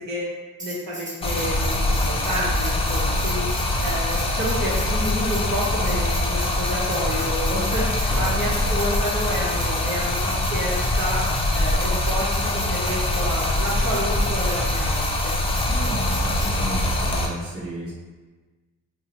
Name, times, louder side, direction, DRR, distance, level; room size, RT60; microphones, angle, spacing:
Tambourine, 0.6-16.5, right 1 dB, 25° right, 0.9 m, -38 dB
voice 1, 0.6-3.4 3.8-11.3 11.5-15.4, equal, 90° right, -6 dB, 0.8 m, -29 dB
Stream, 1.2-17.3, left 1 dB, 20° left, 0.3 m, -23 dB
voice 2, 8.1-8.8 15.6-17.9, right 1 dB, 45° right, -7 dB, 1.2 m, -33 dB
2.8 x 2.0 x 3.9 m, 1.3 s
cardioid pair, 130°, 32 cm